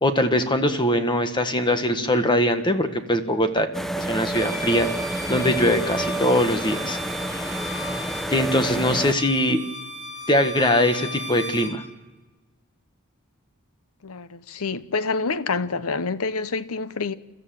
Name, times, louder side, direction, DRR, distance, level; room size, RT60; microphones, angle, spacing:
voice 1, 0.0-3.7 4.0-4.9 5.3-7.0 8.3-9.6 10.3-11.8, left 1 dB, 20° left, 1.5 m, -21 dB
sound 1, 3.7-9.1, right 1 dB, ahead, 0.8 m, -29 dB
Bowed string instrument, 4.3-11.8, equal, 50° left, 3.5 m, -36 dB
voice 2, 14.0-17.1, left 4 dB, 85° left, 0.9 m, -27 dB
29.0 x 13.5 x 7.7 m
head